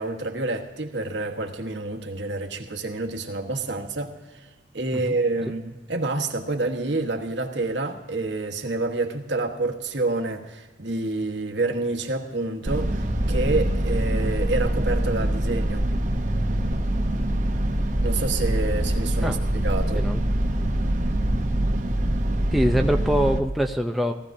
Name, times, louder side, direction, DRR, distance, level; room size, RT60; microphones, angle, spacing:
voice 1, 0.0-4.5 4.7-15.9 18.0-19.4 19.6-20.0, right 2 dB, 75° right, 3 dB, 1.3 m, -28 dB
sound 1, 12.6-23.4, right 1 dB, 40° right, 0.8 m, -24 dB
voice 2, 22.5-24.1, equal, ahead, 3 dB, 0.5 m, -23 dB
19.0 x 14.5 x 2.7 m, 1.2 s
head